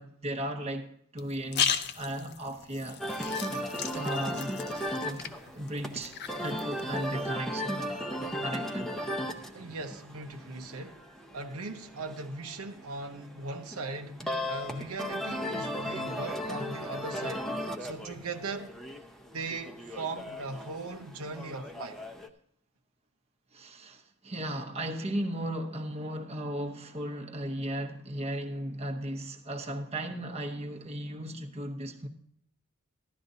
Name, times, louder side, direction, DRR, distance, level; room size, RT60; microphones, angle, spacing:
voice 1, 0.0-3.3 3.9-4.6 5.0-5.3 5.5-7.9 8.4-8.9 14.2-14.4 23.5-32.1, right 1 dB, 30° right, 0.9 m, -36 dB
sound 1, 1.2-7.3, left 8 dB, 50° left, 0.6 m, -36 dB
sound 2, 3.0-22.3, equal, ahead, 0.7 m, -37 dB
voice 2, 9.5-17.5 17.8-18.7 19.3-22.0, right 3 dB, 90° right, 0.9 m, -39 dB
15.0 x 11.5 x 2.7 m
head